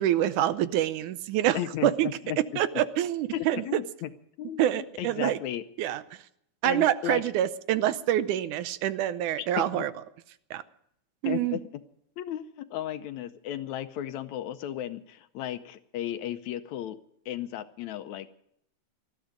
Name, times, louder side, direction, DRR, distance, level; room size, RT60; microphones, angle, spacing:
voice 1, 0.0-2.1 2.6-3.8 4.6-5.4 5.8-6.0 6.6-9.9 10.5-10.6 11.2-11.6, right 12 dB, 80° right, 14 dB, 2.2 m, -26 dB
voice 2, 1.5-2.4 3.3-4.1 4.4-5.6 6.6-7.2 9.4-9.9 11.3-11.6 12.2-17.0 17.3-18.3, left 12 dB, 75° left, 10 dB, 2.0 m, -35 dB
20.0 x 13.5 x 5.1 m, 0.72 s
omnidirectional pair, 3.6 m